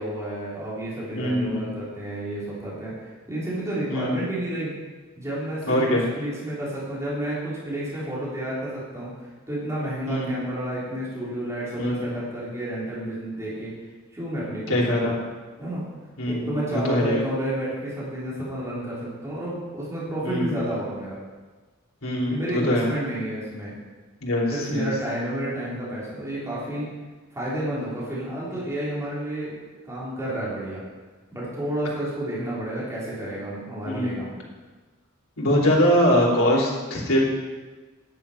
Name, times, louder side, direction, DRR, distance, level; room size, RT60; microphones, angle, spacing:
voice 1, 0.0-4.7 5.2-9.1 9.5-13.7 14.1-15.2 15.6-15.8 16.3-21.2 22.2-23.7 24.5-26.9 27.3-29.5 29.8-30.8 31.3-34.4, right 1 dB, 15° right, -9 dB, 3.7 m, -30 dB
voice 2, 1.1-1.7 3.9-4.1 5.7-6.1 10.1-10.3 11.7-12.1 14.7-15.1 16.2-17.2 20.2-20.7 22.0-22.9 24.2-24.9 33.8-34.2 35.4-37.2, equal, 80° left, -3 dB, 3.2 m, -23 dB
10.5 x 9.1 x 5.8 m, 1.3 s
head